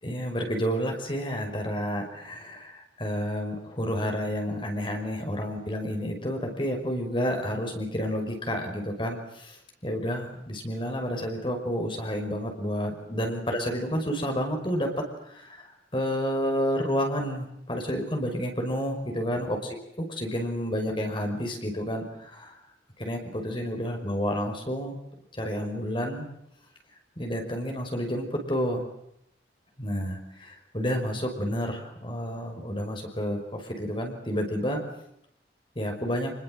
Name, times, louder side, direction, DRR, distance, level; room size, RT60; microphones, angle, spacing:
voice 1, 0.0-14.9 15.2-22.6 23.0-25.0 25.4-26.3 27.2-28.9 29.8-34.8 35.8-36.3, equal, 30° left, 3 dB, 5.3 m, -30 dB
30.0 x 21.5 x 7.8 m, 0.76 s
head